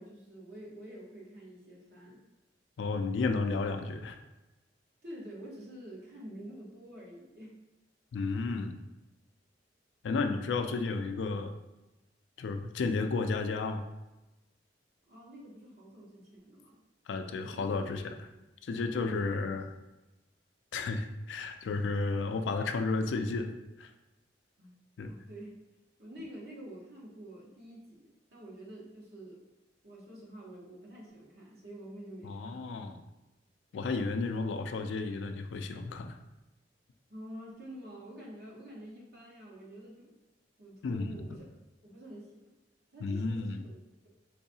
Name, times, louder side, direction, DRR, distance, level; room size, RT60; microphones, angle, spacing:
voice 1, 0.0-2.2 5.0-7.6 15.1-16.8 17.4-18.4 18.9-19.5 24.6-24.7 25.1-25.6 26.0-29.4 29.8-32.7 37.1-40.1 40.6-41.6 41.8-42.6 42.9-43.8, right 1 dB, 65° right, -4 dB, 1.1 m, -48 dB
voice 2, 2.8-4.2 8.1-8.8 10.0-11.5 12.4-13.8 17.1-18.2 18.6-19.7 20.7-23.5 23.8-23.9 25.0-25.1 32.2-33.0 33.7-36.2 40.8-41.3 43.0-43.6, left 3 dB, 85° left, 7 dB, 0.3 m, -32 dB
3.9 x 2.7 x 2.7 m, 1.0 s
head